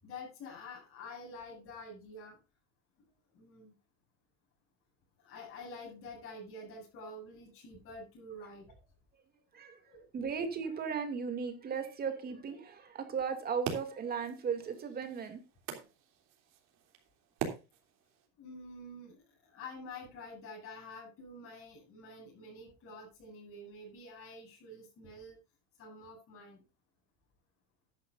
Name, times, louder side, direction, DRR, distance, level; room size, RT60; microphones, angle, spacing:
voice 1, 0.0-2.4 3.3-3.8 5.2-8.7 9.8-10.0 18.4-25.4 25.8-26.6, left 2 dB, 40° left, -3 dB, 7.7 m, -48 dB
voice 2, 10.1-15.4, right 6 dB, 25° right, 6 dB, 2.6 m, -36 dB
sound 1, 13.3-18.3, right 8 dB, 50° right, 3.2 m, -44 dB
14.5 x 11.0 x 2.6 m, 0.30 s
cardioid pair, 155°, 35 cm